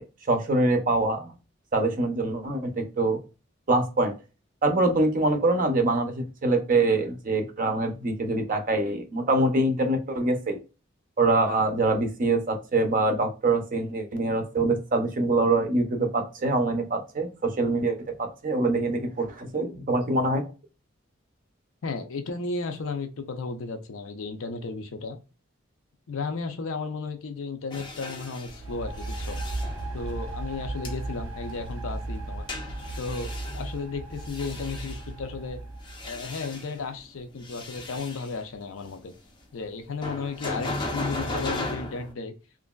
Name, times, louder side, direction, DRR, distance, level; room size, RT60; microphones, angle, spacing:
voice 1, 0.0-1.3 1.7-3.2 3.7-4.1 4.6-10.6 11.2-20.5, right 2 dB, 40° right, 6 dB, 0.5 m, -24 dB
voice 2, 21.8-25.2 26.1-29.4 29.9-32.4 33.0-35.6 36.0-39.1 39.5-42.3, left 4 dB, 75° left, 6 dB, 0.5 m, -34 dB
sound 1, 27.7-30.3 30.8-30.9 32.5-35.1 35.7-37.0 37.4-38.4 40.0-42.1, left 2 dB, 20° left, 0.4 m, -36 dB
sound 2, 28.5-36.2, right 2 dB, 85° right, 0.6 m, -36 dB
2.9 x 2.5 x 2.2 m, 0.31 s
head